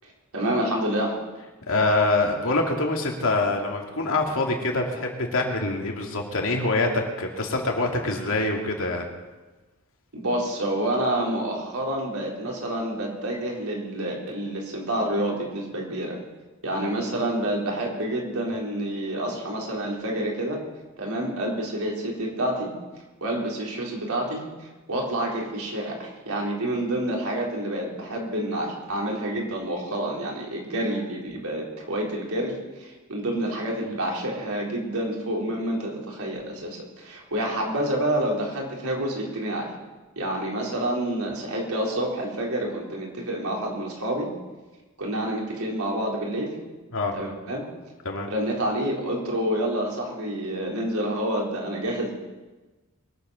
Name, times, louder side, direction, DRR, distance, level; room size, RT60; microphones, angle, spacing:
voice 1, 0.0-1.2 10.1-16.2 16.6-20.6 21.0-22.7 23.2-39.7 40.2-44.3 45.0-46.6 47.1-47.7 48.3-52.1, right 1 dB, 85° right, -2 dB, 4.0 m, -28 dB
voice 2, 1.7-9.0 46.9-47.1 48.0-48.3, left 2 dB, 65° left, 1 dB, 2.6 m, -25 dB
22.0 x 8.3 x 6.3 m, 1.2 s
head